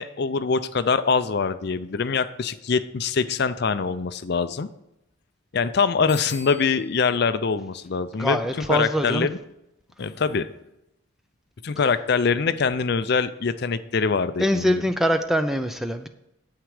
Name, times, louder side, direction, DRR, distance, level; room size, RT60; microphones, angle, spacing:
voice 1, 0.0-4.7 5.5-8.4 8.7-9.4 10.0-10.5 11.6-14.8, left 5 dB, 50° left, 13 dB, 0.5 m, -24 dB
Bicycle bell, 6.1-7.0, left 2 dB, 20° left, 2.8 m, -40 dB
voice 2, 8.2-9.3 14.4-16.1, equal, ahead, 8 dB, 0.4 m, -23 dB
9.4 x 8.1 x 4.9 m, 0.86 s
head